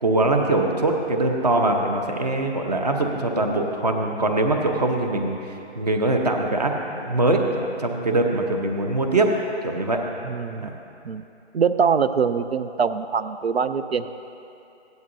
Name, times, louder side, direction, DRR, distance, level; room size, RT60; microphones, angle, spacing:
voice 1, 0.0-9.3 9.6-10.0 10.6-10.7, right 2 dB, 35° right, 2 dB, 0.9 m, -22 dB
voice 2, 10.2-10.7 11.0-11.2 11.5-14.1, right 6 dB, 65° right, 11 dB, 0.5 m, -23 dB
16.5 x 10.5 x 2.7 m, 2.7 s
hypercardioid pair, 175°, 35 cm